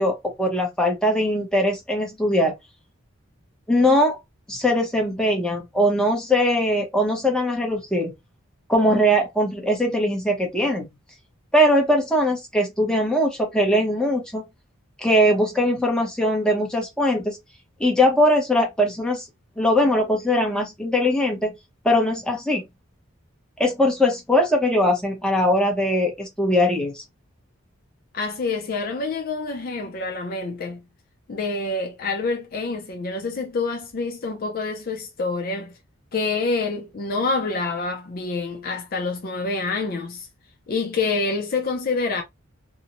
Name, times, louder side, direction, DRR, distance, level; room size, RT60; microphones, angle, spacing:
voice 1, 0.0-2.5 3.7-4.2 4.5-8.1 8.7-10.9 11.5-14.4 15.0-17.4 17.8-19.3 19.6-21.5 21.8-22.6 23.6-27.0, left 1 dB, 5° left, 0.7 m, -21 dB
voice 2, 28.1-30.8 31.3-35.7 36.1-40.3 40.7-42.2, left 3 dB, 45° left, 0.4 m, -27 dB
2.6 x 2.0 x 2.8 m
head